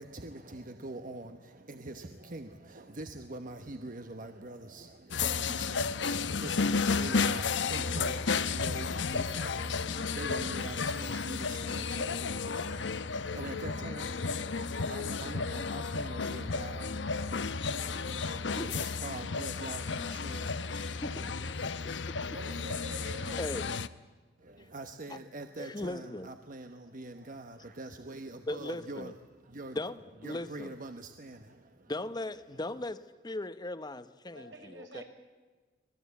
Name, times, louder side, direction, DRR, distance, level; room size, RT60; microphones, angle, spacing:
voice 1, 0.0-21.7 24.4-29.8 30.2-31.9, right 2 dB, 50° right, 7 dB, 1.2 m, -44 dB
sound 1, 5.1-23.9, left 5 dB, 75° left, 0.9 m, -33 dB
voice 2, 21.0-22.1 23.4-23.7 25.1-25.2 25.6-26.3 28.5-29.1 29.7-30.7 31.9-33.0 33.2-35.0, left 2 dB, 25° left, 12 dB, 0.9 m, -38 dB
voice 3, 22.3-23.4 34.3-35.0, right 1 dB, 80° right, 3 dB, 5.6 m, -46 dB
26.0 x 18.5 x 8.3 m, 1.4 s
head